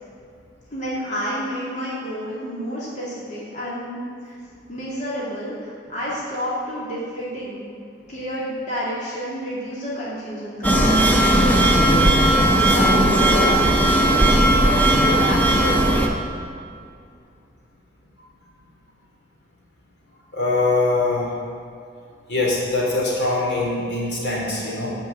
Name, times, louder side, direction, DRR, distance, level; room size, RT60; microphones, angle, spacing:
voice 1, 0.7-4.4 4.7-7.6 8.1-15.9, equal, 45° left, -7 dB, 2.5 m, -30 dB
sound 1, 10.6-16.1, right 1 dB, 10° left, 1.1 m, -17 dB
voice 2, 20.3-21.3 22.3-24.9, left 2 dB, 70° left, -4 dB, 3.0 m, -22 dB
12.5 x 5.4 x 8.2 m, 2.4 s
head